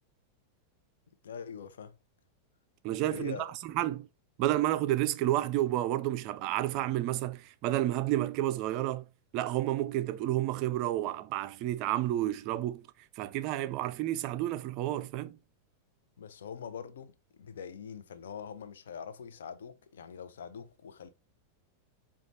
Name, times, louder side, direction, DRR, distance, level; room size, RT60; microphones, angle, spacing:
voice 1, 1.2-1.9 3.1-3.5 16.2-21.1, left 7 dB, 65° left, 0.6 m, -43 dB
voice 2, 2.8-4.1 4.4-9.1 9.3-12.9 13.2-15.4, right 14 dB, 40° right, 0.3 m, -30 dB
5.0 x 2.3 x 3.1 m
figure-of-eight pair, 90°, 0 cm